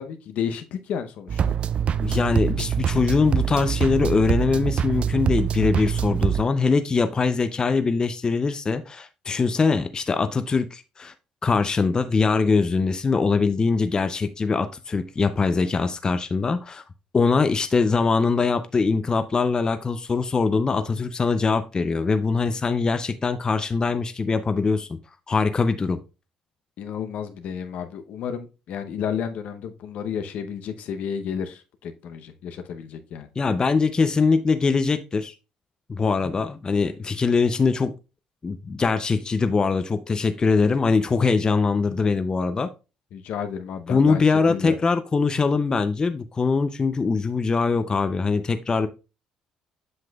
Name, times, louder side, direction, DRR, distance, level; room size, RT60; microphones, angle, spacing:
voice 1, 0.0-1.5 26.8-33.3 43.1-44.7, left 7 dB, 70° left, 0.7 m, -32 dB
sound 1, 1.3-6.4, right 8 dB, 50° right, 0.3 m, -24 dB
voice 2, 2.0-11.1 11.4-16.8 17.1-24.9 25.3-26.0 33.4-35.3 35.9-37.9 38.4-42.7 43.9-48.9, left 4 dB, 30° left, 0.5 m, -22 dB
7.7 x 5.8 x 2.3 m
supercardioid pair, 75°, 3 cm